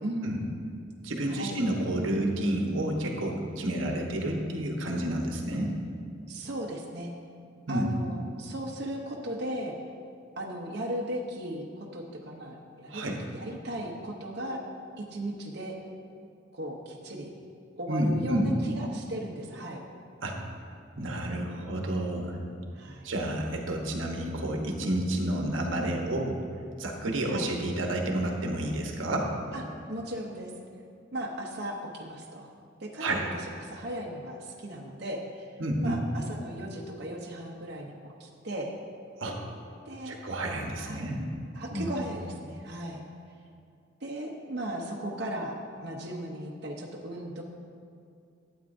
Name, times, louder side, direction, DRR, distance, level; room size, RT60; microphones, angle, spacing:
voice 1, 0.0-0.5 1.3-1.6 6.3-7.1 7.7-9.7 10.4-14.6 15.0-15.7 16.5-17.3 17.8-19.8 20.9-21.1 22.7-23.1 27.2-27.5 29.5-30.5 31.1-32.5 32.8-35.5 35.8-37.9 38.2-38.7 39.9-40.2 40.8-41.1 41.5-43.0 44.0-45.6 45.8-47.4, right 1 dB, 60° right, -1 dB, 0.8 m, -37 dB
voice 2, 1.0-5.7 7.7-7.9 12.9-13.2 17.9-18.5 20.2-20.4 21.0-22.4 23.0-26.4 26.8-29.3 33.0-33.2 35.6-36.0 39.2-39.4 40.0-41.2 41.7-41.9, right 1 dB, 90° right, 1 dB, 1.0 m, -30 dB
12.0 x 8.6 x 2.6 m, 2.4 s
head